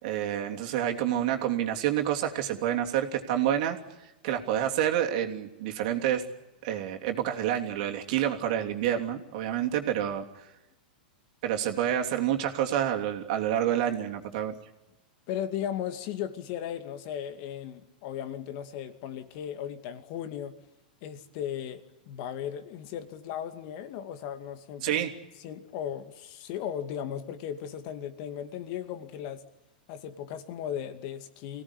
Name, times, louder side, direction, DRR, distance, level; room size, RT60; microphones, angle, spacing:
voice 1, 0.0-3.8 4.2-6.2 6.6-10.2 11.4-14.6 24.8-25.1, right 11 dB, 60° right, 3 dB, 3.1 m, -28 dB
voice 2, 15.3-20.6 21.0-21.8 22.1-25.0 25.4-29.4 29.9-31.6, left 9 dB, 55° left, 9 dB, 2.4 m, -36 dB
25.0 x 17.5 x 9.9 m, 1.0 s
hypercardioid pair, 115°, 5 cm